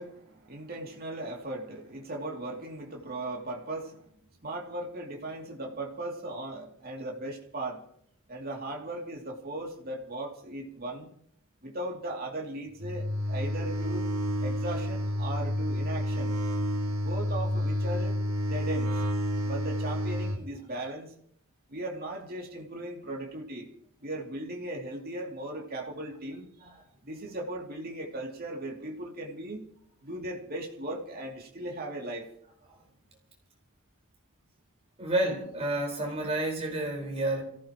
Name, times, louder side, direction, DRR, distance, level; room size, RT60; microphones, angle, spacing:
voice 1, 0.0-4.1 4.4-7.8 8.3-11.1 11.6-14.1 14.4-16.3 17.0-19.0 19.4-21.1 21.7-23.7 24.0-26.7 27.0-29.6 30.0-32.3, right 1 dB, 45° right, 0 dB, 2.7 m, -38 dB
sound 1, 12.8-20.4, equal, 85° right, 2.5 m, -30 dB
voice 2, 35.0-37.4, right 1 dB, 30° right, 0 dB, 4.7 m, -30 dB
28.5 x 15.5 x 3.0 m, 0.66 s
head